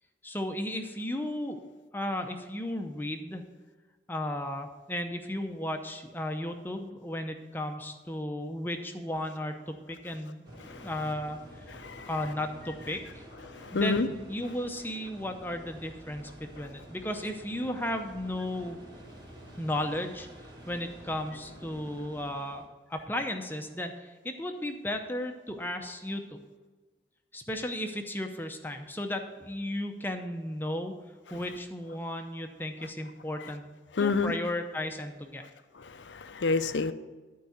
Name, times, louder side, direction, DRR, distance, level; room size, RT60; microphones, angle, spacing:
voice 1, 0.2-1.6 1.9-3.4 4.1-10.4 10.8-13.2 13.7-18.8 19.6-20.3 20.7-22.6 22.9-26.4 27.3-30.9 31.3-33.7 34.0-35.4, left 1 dB, 10° left, 5 dB, 0.7 m, -34 dB
sound 1, 10.4-22.7, equal, 25° right, 2.2 m, -49 dB
voice 2, 11.8-12.1 13.5-14.1 34.0-34.3 35.8-36.9, left 4 dB, 90° left, 11 dB, 0.6 m, -29 dB
12.0 x 4.7 x 7.9 m, 1.3 s
head